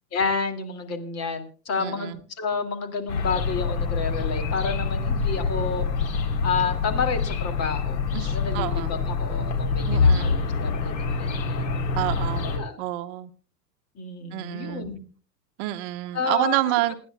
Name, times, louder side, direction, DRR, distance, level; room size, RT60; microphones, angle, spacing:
voice 1, 0.1-5.9 6.4-11.6 12.5-12.8 14.0-15.0 16.1-16.6, left 5 dB, 30° left, 7 dB, 2.6 m, -30 dB
voice 2, 1.8-2.2 8.1-8.9 9.9-10.4 12.0-12.5 12.8-13.3 14.3-14.9 15.6-17.0, right 16 dB, 45° right, 9 dB, 1.1 m, -28 dB
sound 1, 3.1-12.6, left 4 dB, 80° left, 3.9 m, -25 dB
28.0 x 10.5 x 2.3 m, 0.38 s
hypercardioid pair, 115°, 50 cm